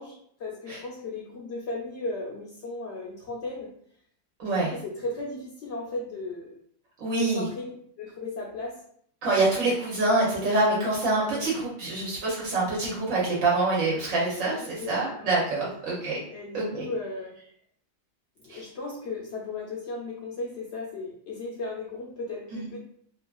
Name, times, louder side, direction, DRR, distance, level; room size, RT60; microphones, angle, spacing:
voice 1, 0.0-3.7 4.6-6.6 7.2-7.7 8.0-8.8 11.0-11.5 14.5-16.0 16.3-17.4 18.4-22.8, left 2 dB, 65° left, -2 dB, 0.8 m, -36 dB
voice 2, 4.4-4.7 7.0-7.4 9.2-16.2 16.5-16.8 18.5-18.6 22.5-22.7, right 2 dB, 75° right, -6 dB, 1.1 m, -26 dB
2.9 x 2.3 x 2.3 m, 0.63 s
omnidirectional pair, 1.4 m